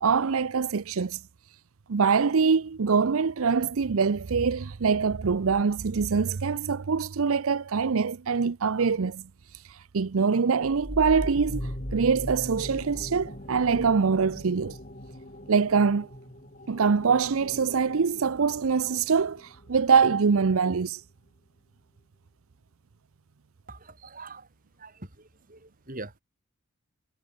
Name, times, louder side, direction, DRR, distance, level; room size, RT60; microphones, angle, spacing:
voice 1, 0.0-1.2 1.9-9.2 9.5-14.8 15.5-16.1 16.7-21.0, right 5 dB, 70° right, 0.6 m, -24 dB
sound 1, 10.6-19.9, equal, 35° left, 4.6 m, -39 dB
voice 2, 23.7-24.5 24.8-26.2, right 2 dB, 40° right, 4.3 m, -43 dB
head